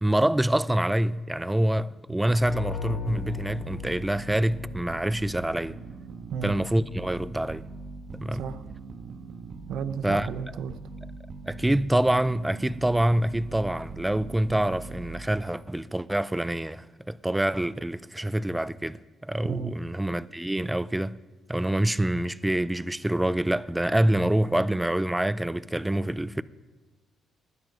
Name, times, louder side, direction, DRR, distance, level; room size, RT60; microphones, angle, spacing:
voice 1, 0.0-5.8 6.4-7.6 8.1-8.4 10.0-10.3 11.4-21.2 21.5-26.4, right 1 dB, 10° right, 0.5 m, -26 dB
sound 1, 2.3-5.1, left 7 dB, 85° left, 3.8 m, -37 dB
sound 2, 2.7-15.6, right 3 dB, 55° right, 1.4 m, -42 dB
voice 2, 9.7-10.7 19.5-19.7, right 7 dB, 75° right, 0.7 m, -33 dB
19.5 x 10.5 x 5.2 m
cardioid pair, 90°, 0 cm